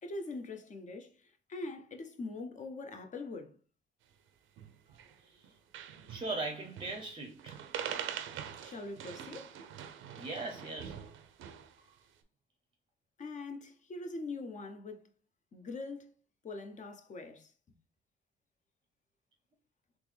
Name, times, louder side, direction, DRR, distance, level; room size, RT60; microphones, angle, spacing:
voice 1, 0.0-3.6 8.6-9.6 13.2-15.1 15.5-16.1 16.4-17.5, left 3 dB, 40° left, 0.6 m, -43 dB
sound 1, 4.6-5.1 5.4-5.5 5.7-6.3 6.8-7.1 7.4-11.8, right 9 dB, 85° right, 0.5 m, -43 dB
voice 2, 6.1-7.6 10.2-11.0, right 3 dB, 25° right, 0.6 m, -39 dB
3.5 x 3.0 x 3.3 m
cardioid pair, 90°, 20 cm